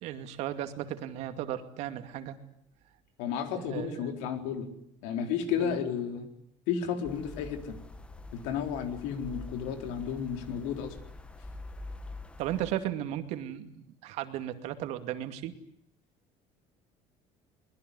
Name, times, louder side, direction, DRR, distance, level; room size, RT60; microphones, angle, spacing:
voice 1, 0.0-2.4 3.6-4.0 5.6-5.8 12.4-15.5, right 12 dB, 60° right, 9 dB, 2.4 m, -35 dB
voice 2, 3.2-4.7 5.0-6.3 6.7-7.8 8.3-10.9, left 7 dB, 90° left, 7 dB, 4.1 m, -32 dB
sound 1, 7.0-12.7, left 2 dB, 10° left, 1.3 m, -45 dB
23.5 x 21.0 x 9.6 m, 0.72 s
cardioid pair, 170°, 13 cm